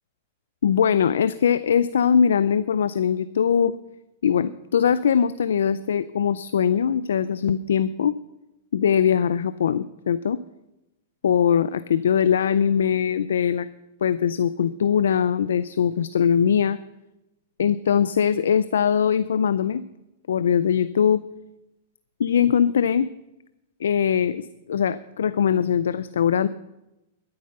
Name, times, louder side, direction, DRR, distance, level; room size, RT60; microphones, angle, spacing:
voice 1, 0.6-3.8 4.2-8.1 8.7-10.4 11.2-13.7 14.0-16.8 17.6-19.8 20.3-21.2 22.2-23.1 23.8-26.5, left 8 dB, 85° left, 15 dB, 0.4 m, -21 dB
12.5 x 9.6 x 6.6 m, 0.94 s
hypercardioid pair, 135°, 0 cm